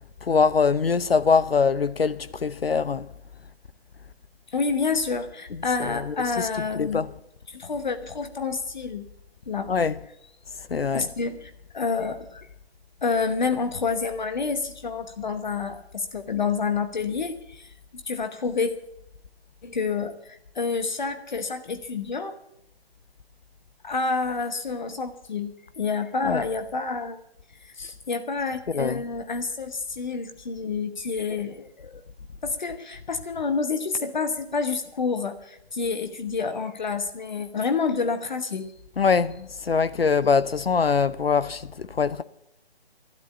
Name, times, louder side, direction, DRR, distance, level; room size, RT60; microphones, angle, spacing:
voice 1, 0.2-3.1 5.8-6.5 6.7-7.1 9.7-9.9 10.7-11.1 26.2-26.4 28.7-29.0 39.0-42.2, left 5 dB, 65° left, 0.7 m, -23 dB
voice 2, 4.5-7.0 7.5-9.1 9.5-9.7 10.9-12.5 13.0-18.7 19.6-22.4 23.8-27.2 27.6-32.0 32.4-38.7, left 4 dB, 45° left, 1.1 m, -28 dB
12.0 x 11.0 x 8.1 m
figure-of-eight pair, 145°, 32 cm